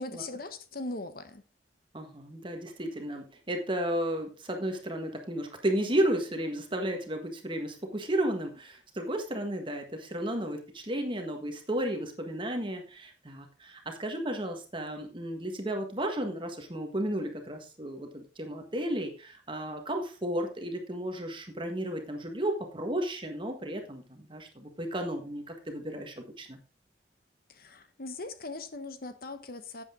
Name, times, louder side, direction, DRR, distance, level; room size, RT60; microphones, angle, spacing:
voice 1, 0.0-1.4 27.5-29.8, left 2 dB, 55° left, 1.1 m, -40 dB
voice 2, 1.9-26.6, right 1 dB, 30° right, 1.7 m, -33 dB
11.5 x 8.2 x 3.9 m
head